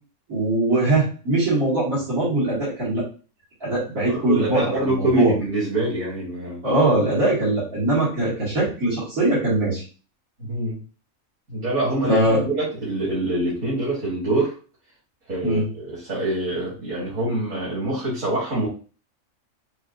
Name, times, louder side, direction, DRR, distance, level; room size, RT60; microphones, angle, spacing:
voice 1, 0.3-3.1 3.6-5.3 6.6-9.8 12.1-12.5 15.4-15.6, right 2 dB, 85° right, -10 dB, 2.8 m, -21 dB
voice 2, 4.0-6.6 10.4-10.8 11.5-14.5 15.3-18.7, right 1 dB, 70° right, -8 dB, 2.4 m, -25 dB
6.2 x 2.5 x 2.6 m, 0.37 s
omnidirectional pair, 1.4 m